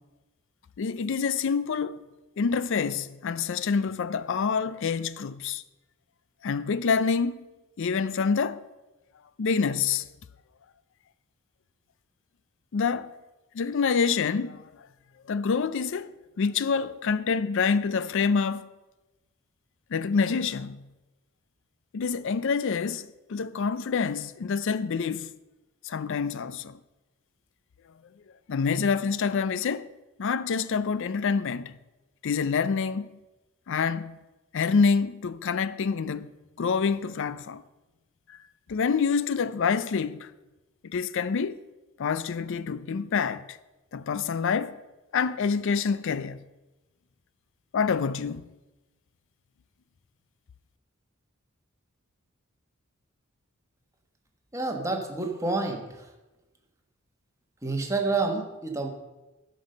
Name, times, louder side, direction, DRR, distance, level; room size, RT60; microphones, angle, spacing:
voice 1, 0.8-2.0 2.4-5.6 6.4-7.5 7.8-8.6 9.4-10.1 12.7-13.1 13.5-14.7 15.3-18.7 19.9-20.9 21.9-25.3 25.8-26.8 28.5-29.9 30.2-31.8 32.2-33.2 33.7-34.2 34.5-36.3 36.6-37.6 38.3-38.4 38.7-40.3 40.8-41.6 42.0-43.6 43.9-44.8 45.1-46.4 47.7-48.5, left 5 dB, 60° left, 0.4 m, -27 dB
voice 2, 54.5-56.1 57.6-58.9, right 3 dB, 15° right, 1.3 m, -28 dB
12.0 x 5.3 x 6.5 m
head